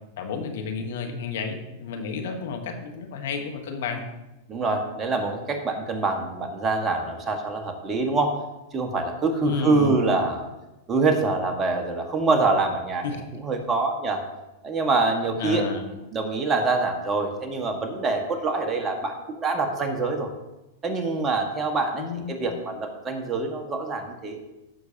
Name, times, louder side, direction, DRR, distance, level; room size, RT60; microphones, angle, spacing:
voice 1, 0.2-4.0 9.4-9.9 13.0-13.2 15.4-15.8 21.9-22.3, left 5 dB, 65° left, 5 dB, 1.2 m, -31 dB
voice 2, 4.5-8.4 8.7-10.5 10.9-13.0 13.3-14.2 14.6-20.3 20.8-24.4, right 3 dB, 25° right, 3 dB, 1.6 m, -25 dB
15.5 x 6.5 x 2.9 m, 0.98 s
hypercardioid pair, 100°, 0 cm